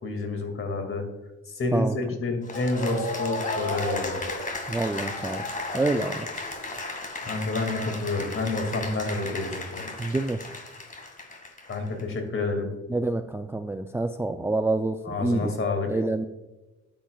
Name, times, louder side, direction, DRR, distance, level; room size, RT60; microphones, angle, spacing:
voice 1, 0.0-1.0 1.5-4.2 7.3-9.9 11.7-12.7 15.1-15.9, left 3 dB, 45° left, 5 dB, 2.3 m, -29 dB
Cheering / Applause, 2.4-12.0, left 2 dB, 25° left, 2.0 m, -34 dB
voice 2, 4.7-5.4 5.7-6.3 10.0-10.4 12.9-15.5 15.9-16.3, right 2 dB, 10° right, 8 dB, 0.4 m, -27 dB
13.0 x 8.9 x 2.4 m, 1.1 s
cardioid pair, 90°, 30 cm